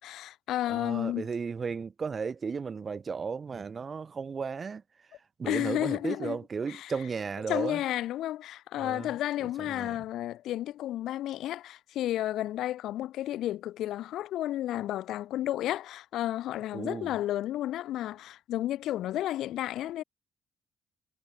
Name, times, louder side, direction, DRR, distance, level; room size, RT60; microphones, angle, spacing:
voice 1, 0.0-1.3 5.5-6.4 6.7-6.9 7.5-20.0, left 13 dB, 80° left, 2.6 m, -32 dB
voice 2, 0.7-4.8 5.4-7.8 8.8-9.2 9.6-10.0 16.7-17.1, right 5 dB, 40° right, 4.6 m, -35 dB
cardioid pair, 90°, 0 cm